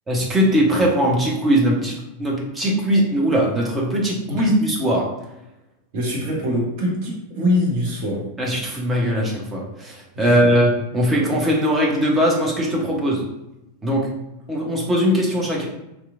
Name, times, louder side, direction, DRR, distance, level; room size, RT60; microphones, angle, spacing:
voice 1, 0.1-5.1 8.4-13.2 13.8-14.1 14.5-15.6, equal, 15° right, -3 dB, 0.8 m, -20 dB
voice 2, 5.9-8.3 10.1-10.4, left 1 dB, 45° right, -2 dB, 0.9 m, -23 dB
2.9 x 2.3 x 2.5 m, 0.92 s
figure-of-eight pair, 90°, 0 cm